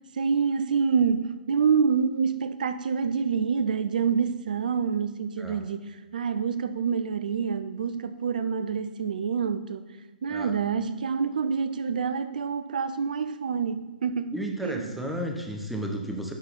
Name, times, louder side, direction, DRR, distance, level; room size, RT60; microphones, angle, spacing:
voice 1, 0.1-9.9 10.2-15.0, right 6 dB, 65° right, 0.5 m, -27 dB
voice 2, 14.3-16.3, equal, ahead, 0.9 m, -33 dB
10.5 x 3.9 x 4.4 m
figure-of-eight pair, 120°, 5 cm